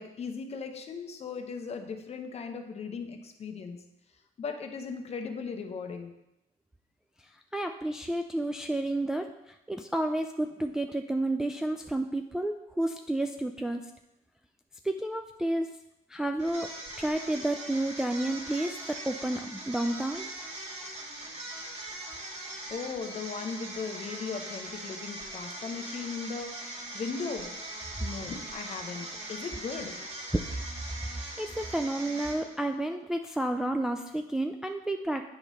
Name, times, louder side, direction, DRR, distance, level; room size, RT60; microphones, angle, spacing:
voice 1, 0.0-3.8 4.4-6.1 22.7-26.7 26.9-27.6 28.0-30.0, left 5 dB, 40° left, 5 dB, 0.8 m, -37 dB
voice 2, 7.5-9.3 9.7-13.9 14.8-15.7 16.1-16.7 17.0-20.3 31.1-35.2, right 1 dB, 5° right, 5 dB, 0.3 m, -31 dB
sound 1, 16.4-32.7, right 1 dB, 40° right, 1.7 m, -41 dB
8.5 x 3.1 x 5.5 m, 0.88 s
cardioid pair, 110°, 17 cm